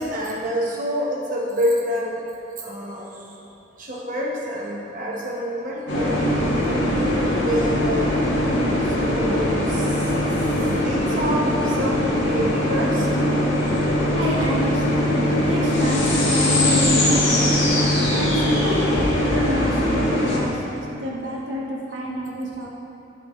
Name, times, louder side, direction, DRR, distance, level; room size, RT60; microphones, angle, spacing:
voice 1, 0.0-2.2 2.6-3.3 3.8-8.5 8.8-10.1 10.8-13.1 14.1-14.2 18.1-18.2, equal, 45° right, -3 dB, 1.0 m, -28 dB
sound 1, 5.9-20.4, left 1 dB, 75° left, 1.5 m, -21 dB
voice 2, 14.2-17.7 18.1-18.9 19.2-22.7, equal, 70° right, -3 dB, 1.1 m, -28 dB
8.4 x 5.9 x 3.1 m, 2.8 s
head